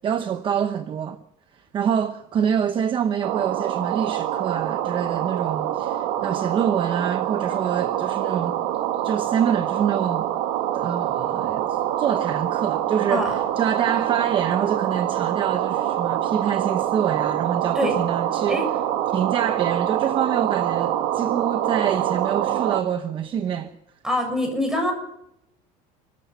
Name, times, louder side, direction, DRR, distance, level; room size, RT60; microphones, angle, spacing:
voice 1, 0.0-1.2 1.7-8.6 9.0-10.3 10.7-18.6 19.1-23.7, right 8 dB, 35° right, 1.0 m, -26 dB
sound 1, 3.2-22.8, right 12 dB, 80° right, 2.2 m, -25 dB
voice 2, 24.0-24.9, left 1 dB, 5° right, 7.1 m, -24 dB
29.0 x 14.5 x 7.1 m
cardioid pair, 155°, 15 cm